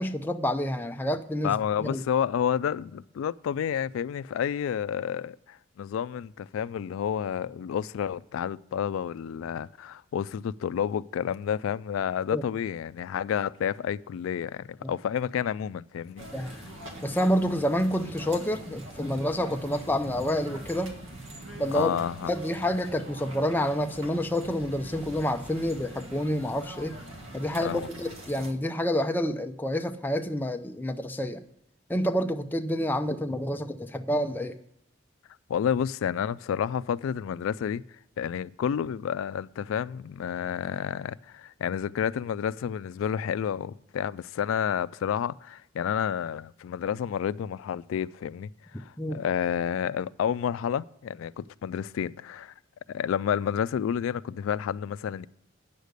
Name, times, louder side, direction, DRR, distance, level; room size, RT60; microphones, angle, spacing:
voice 1, 0.0-2.0 12.3-12.4 14.8-14.9 16.3-16.5 17.0-21.0 21.6-21.9 22.3-27.0 27.3-31.4 31.9-34.6 49.0-49.2, equal, 10° left, 0.5 m, -28 dB
voice 2, 1.4-16.3 21.7-22.4 27.6-27.9 35.5-37.8 38.2-52.5 52.9-55.3, left 8 dB, 85° left, 0.3 m, -30 dB
sound 1, 16.2-28.5, right 1 dB, 80° right, 1.7 m, -43 dB
9.0 x 6.5 x 6.6 m
head